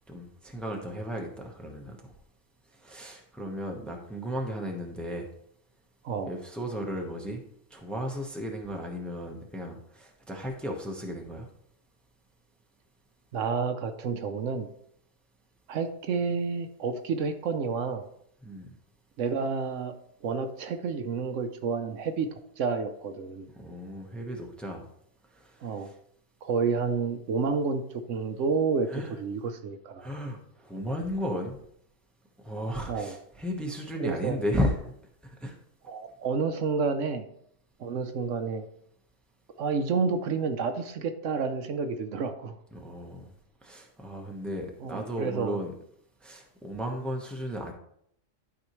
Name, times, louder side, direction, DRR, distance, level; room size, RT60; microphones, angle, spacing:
voice 1, 0.1-2.1 2.8-5.3 6.3-7.4 7.7-11.5 18.4-18.7 23.5-24.9 25.3-25.9 28.9-29.2 30.0-31.6 32.4-34.9 35.2-35.6 42.7-43.3 43.6-45.7 46.2-47.7, equal, ahead, 1 dB, 0.9 m, -34 dB
voice 2, 13.3-14.7 15.7-18.0 19.2-19.9 20.2-22.3 22.6-23.5 25.6-25.9 26.4-28.9 29.2-30.1 32.9-33.2 34.0-34.4 35.9-37.3 37.8-38.7 39.6-42.5 44.8-45.6, right 5 dB, 70° right, 8 dB, 1.0 m, -30 dB
12.0 x 4.8 x 3.1 m, 0.71 s
omnidirectional pair, 1.3 m